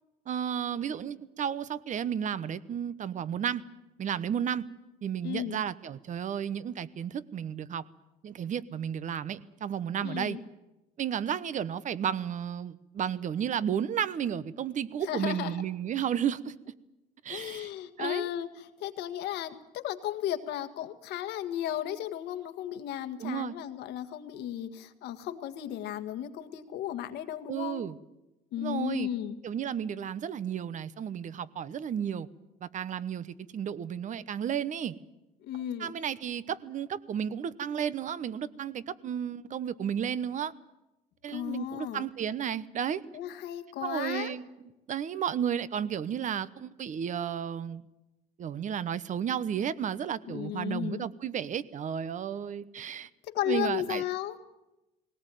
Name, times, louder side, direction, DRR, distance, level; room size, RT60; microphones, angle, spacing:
voice 1, 0.3-3.6 4.0-4.7 5.0-7.8 8.2-10.4 11.0-16.5 17.2-17.7 18.0-18.3 23.2-23.5 27.5-28.0 28.6-29.1 29.4-32.3 32.6-34.9 35.8-40.5 41.2-43.0 43.8-44.4 44.9-47.8 48.4-53.1 53.5-54.0, right 8 dB, 45° right, 17 dB, 1.0 m, -33 dB
voice 2, 5.2-5.6 10.0-10.4 15.0-15.6 17.3-27.8 28.5-29.4 35.4-35.9 41.3-42.0 43.1-44.3 50.3-51.1 53.3-54.4, left 11 dB, 85° left, 8 dB, 1.7 m, -35 dB
20.0 x 18.0 x 9.2 m, 0.98 s
cardioid pair, 110°, 17 cm